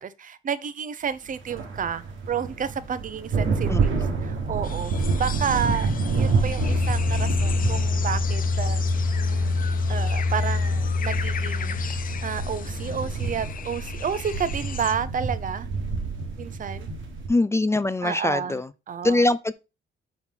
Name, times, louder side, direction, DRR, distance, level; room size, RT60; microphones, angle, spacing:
voice 1, 0.0-4.0 4.3-5.9 6.2-8.8 9.2-9.6 9.9-15.7 16.4-16.9 18.0-18.6 18.9-19.2, right 7 dB, 40° right, 0.7 m, -31 dB
sound 1, 1.3-17.3, right 4 dB, 75° right, 1.4 m, -29 dB
voice 2, 3.7-4.1 17.3-18.7 19.0-19.5, left 2 dB, 15° left, 0.3 m, -23 dB
sound 2, 4.6-14.9, left 7 dB, 45° left, 0.7 m, -38 dB
sound 3, 6.6-13.1, left 3 dB, 65° left, 1.0 m, -25 dB
5.6 x 4.3 x 3.8 m
cardioid pair, 90°, 20 cm